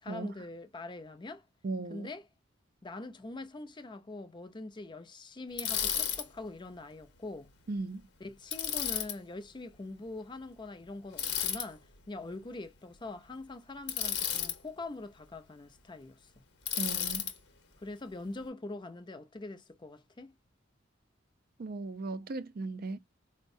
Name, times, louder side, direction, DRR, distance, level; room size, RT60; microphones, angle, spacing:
voice 1, 0.0-1.4 1.9-2.2 2.8-7.5 8.2-16.3 17.8-20.3, left 2 dB, 25° left, 0.5 m, -43 dB
voice 2, 1.6-2.1 7.7-8.1 16.8-17.3 21.6-23.0, right 3 dB, 50° right, 0.4 m, -37 dB
Bicycle, 5.6-6.2 8.5-9.1 11.2-11.7 13.9-14.6 16.7-17.3, left 8 dB, 60° left, 0.9 m, -32 dB
4.4 x 2.1 x 2.5 m
head